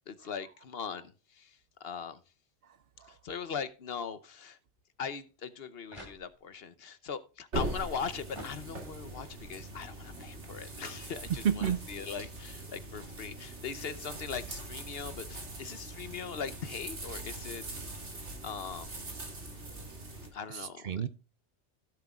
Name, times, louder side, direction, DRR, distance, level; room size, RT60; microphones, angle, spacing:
voice 1, 0.1-2.2 3.1-4.6 5.0-17.6 18.4-19.2 20.3-21.1, left 6 dB, 60° left, 1.0 m, -40 dB
sound 1, 5.9-6.7 8.3-9.2 11.6-12.5, equal, 25° left, 2.9 m, -48 dB
sound 2, 7.5-20.3, right 1 dB, 85° right, 2.8 m, -41 dB
voice 2, 11.4-11.8 20.5-21.1, right 8 dB, 60° right, 0.7 m, -30 dB
16.5 x 7.7 x 2.4 m
omnidirectional pair, 1.2 m